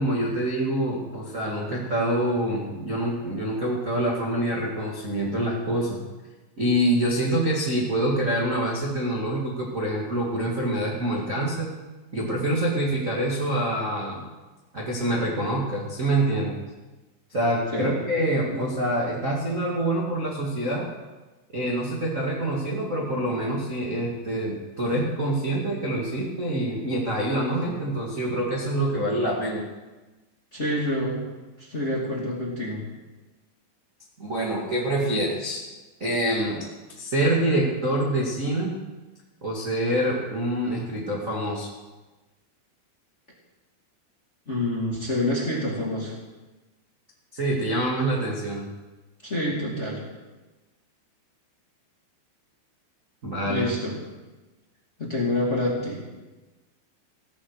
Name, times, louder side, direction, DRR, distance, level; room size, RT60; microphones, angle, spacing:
voice 1, 0.0-6.0 6.6-11.7 12.1-14.2 14.7-16.6 17.3-20.9 21.5-29.7 34.2-35.6 36.0-36.6 37.0-38.8 39.4-41.7 47.3-48.6 53.2-53.7, right 1 dB, 30° right, -5 dB, 1.5 m, -26 dB
voice 2, 30.5-31.3 31.6-32.8 44.5-46.1 49.2-50.0 53.5-54.0 55.0-56.0, left 1 dB, 20° left, -3 dB, 2.0 m, -27 dB
16.5 x 14.5 x 4.9 m, 1.2 s
omnidirectional pair, 5.1 m